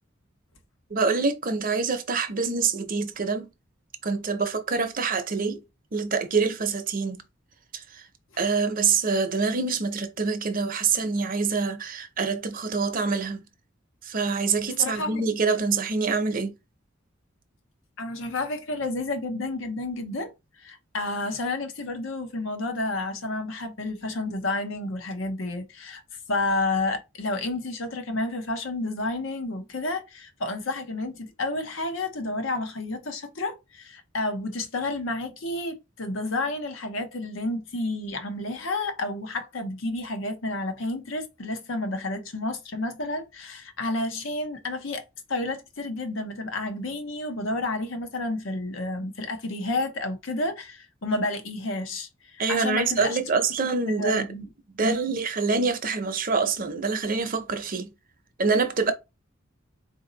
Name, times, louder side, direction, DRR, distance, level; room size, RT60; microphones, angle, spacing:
voice 1, 0.9-3.5 4.0-5.6 5.9-7.2 7.7-7.8 8.4-13.4 14.0-16.5 52.4-54.3 54.8-57.9 58.4-58.9, right 4 dB, 45° right, 0.7 m, -25 dB
voice 2, 14.8-15.2 18.0-26.0 26.3-45.0 45.3-53.2 53.6-54.5 54.8-55.0, left 2 dB, 75° left, 0.9 m, -30 dB
4.0 x 2.7 x 3.9 m
head